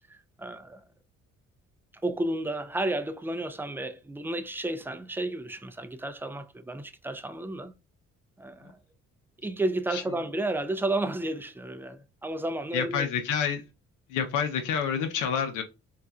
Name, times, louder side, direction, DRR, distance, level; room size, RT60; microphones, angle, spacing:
voice 1, 0.1-0.8 2.0-7.7 8.4-8.8 9.4-13.1, right 2 dB, 5° right, 0.3 m, -32 dB
voice 2, 12.7-13.6 14.1-15.6, left 7 dB, 90° left, 0.7 m, -28 dB
4.0 x 2.4 x 2.3 m
cardioid pair, 90°, 30 cm